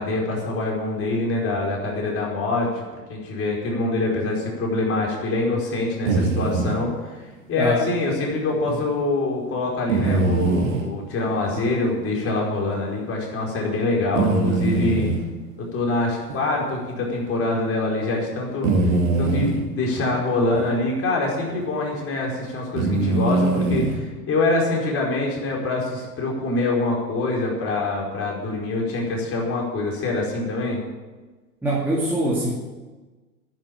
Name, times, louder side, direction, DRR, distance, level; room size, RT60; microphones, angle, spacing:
voice 1, 0.0-2.8 3.1-15.1 15.6-30.8, left 2 dB, 30° left, -1 dB, 4.8 m, -25 dB
sound 1, 6.1-6.8 8.7-8.8 9.9-10.9 11.6-11.7 12.3-12.4 14.1-15.2 16.3-16.4 16.9-17.0 18.6-19.6 20.5-20.7 21.6-21.8 22.8-24.0, right 3 dB, 50° right, 2.2 m, -22 dB
voice 2, 31.6-32.5, right 1 dB, 5° right, -5 dB, 2.3 m, -23 dB
10.5 x 10.5 x 8.6 m, 1.3 s
figure-of-eight pair, 95°, 48 cm